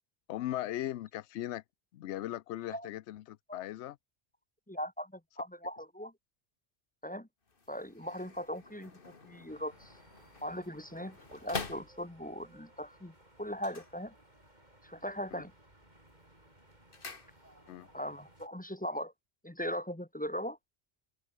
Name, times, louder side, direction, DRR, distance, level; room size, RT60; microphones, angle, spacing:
voice 1, 0.3-1.6 1.9-4.0 15.3-15.4 17.7-17.9, left 13 dB, 80° left, 0.9 m, -38 dB
voice 2, 4.7-6.1 7.0-7.3 7.7-9.9 10.4-14.1 14.8-15.5 17.9-19.1 19.4-20.6, equal, 10° left, 1.0 m, -39 dB
sound 1, 7.4-12.5 13.5-14.6 14.9-15.4 15.8-17.9 18.1-18.2, left 4 dB, 50° left, 2.1 m, -46 dB
sound 2, 9.5-18.5, right 1 dB, 40° right, 6.8 m, -61 dB
omnidirectional pair, 1.2 m